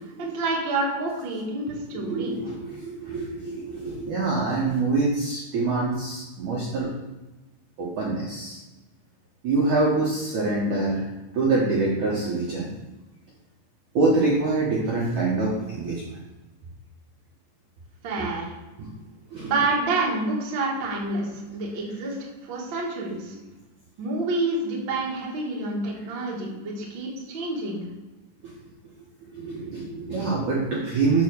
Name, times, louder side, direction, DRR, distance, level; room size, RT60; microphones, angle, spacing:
voice 1, 0.2-2.3 18.0-18.4 19.4-23.3 24.0-27.8, right 2 dB, 50° right, -4 dB, 1.3 m, -28 dB
voice 2, 1.9-6.9 7.8-8.6 9.4-11.1 11.3-12.7 13.9-16.2 18.2-18.3 18.8-19.0 19.3-19.5 28.4-28.5 29.2-31.2, right 3 dB, 70° right, -4 dB, 1.8 m, -25 dB
6.6 x 5.8 x 6.5 m, 1.1 s
omnidirectional pair, 5.5 m